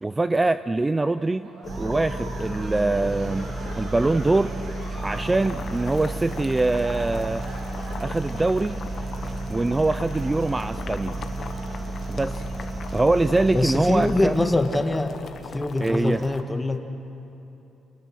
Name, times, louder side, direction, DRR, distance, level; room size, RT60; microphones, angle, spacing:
voice 1, 0.0-1.5 1.8-3.5 3.8-4.5 5.0-7.4 8.0-8.8 9.5-11.2 12.1-12.4 12.9-14.5 15.8-16.2, right 2 dB, 20° right, 12 dB, 0.5 m, -23 dB
sound 1, 1.0-16.5, right 2 dB, 85° right, 6.2 m, -46 dB
Boiling, 1.6-16.4, left 6 dB, 55° left, 1.1 m, -40 dB
sound 2, 1.6-14.6, right 2 dB, 35° right, 2.4 m, -32 dB
voice 2, 13.5-15.2 15.5-17.1, left 2 dB, 10° left, 6 dB, 1.7 m, -24 dB
29.5 x 20.5 x 6.4 m, 3.0 s
cardioid pair, 90°, 0 cm